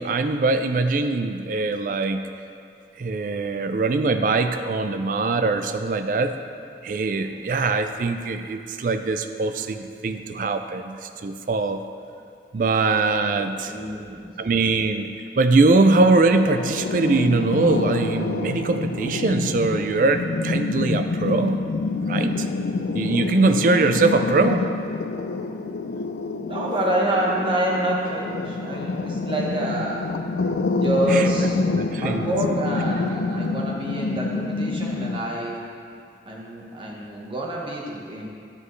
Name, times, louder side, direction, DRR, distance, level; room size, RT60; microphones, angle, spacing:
voice 1, 0.0-2.2 3.0-6.3 6.8-11.8 12.5-13.7 14.4-21.6 22.1-22.5 22.9-24.7 31.1-31.3 31.7-32.3, right 3 dB, 50° right, 8 dB, 0.4 m, -22 dB
voice 2, 13.3-14.3 24.1-24.3 26.4-30.1 30.8-31.6 32.0-35.6 36.2-38.3, right 1 dB, 30° right, -2 dB, 1.1 m, -27 dB
sound 1, 16.3-35.2, left 3 dB, 80° left, 0.4 m, -27 dB
10.0 x 7.5 x 3.2 m, 2.5 s
head